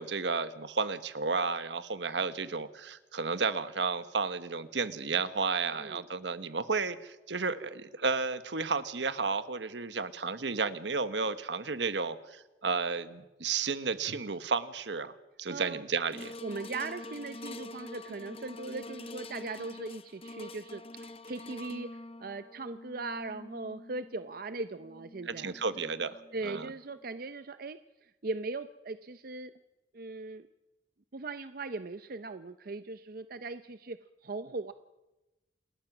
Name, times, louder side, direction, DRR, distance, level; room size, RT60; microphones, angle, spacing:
voice 1, 0.0-15.1 15.4-16.3 25.3-26.2 26.4-26.7, right 4 dB, 80° right, 12 dB, 1.2 m, -32 dB
voice 2, 5.7-6.0 15.5-15.8 16.4-21.9 22.2-25.5 26.3-29.5 29.9-30.5 31.1-34.7, right 3 dB, 55° right, 11 dB, 0.7 m, -39 dB
sound 1, 16.1-26.5 27.1-27.2, left 2 dB, 30° left, 0.7 m, -46 dB
28.0 x 20.0 x 6.1 m, 1.0 s
head